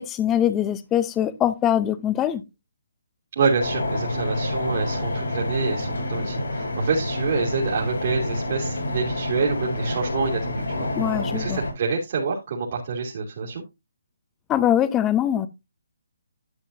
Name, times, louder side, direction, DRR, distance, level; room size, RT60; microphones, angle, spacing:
voice 1, 0.0-2.4 10.9-11.6 14.5-15.5, left 10 dB, 15° left, 0.8 m, -22 dB
voice 2, 3.3-10.9 11.3-13.6, right 4 dB, 50° right, 2.8 m, -27 dB
sound 1, 3.6-11.7, left 1 dB, 80° left, 6.2 m, -28 dB
11.5 x 7.3 x 2.7 m
hypercardioid pair, 155°, 0 cm